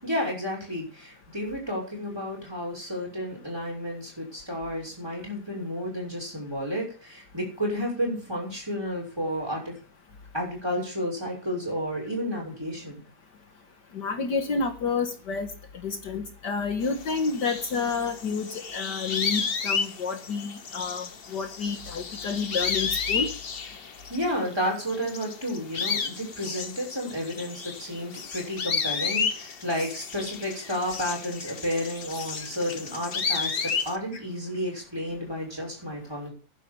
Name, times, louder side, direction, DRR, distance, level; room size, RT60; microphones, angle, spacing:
voice 1, 0.0-9.7 10.3-13.0 24.1-36.3, equal, 10° right, -1 dB, 6.0 m, -31 dB
voice 2, 13.9-15.5 15.8-21.1 21.3-23.3, left 5 dB, 65° left, 6 dB, 2.0 m, -29 dB
sound 1, 16.8-24.5 24.8-34.0, left 5 dB, 40° left, 1.0 m, -32 dB
12.5 x 10.0 x 5.4 m, 0.39 s
omnidirectional pair, 2.0 m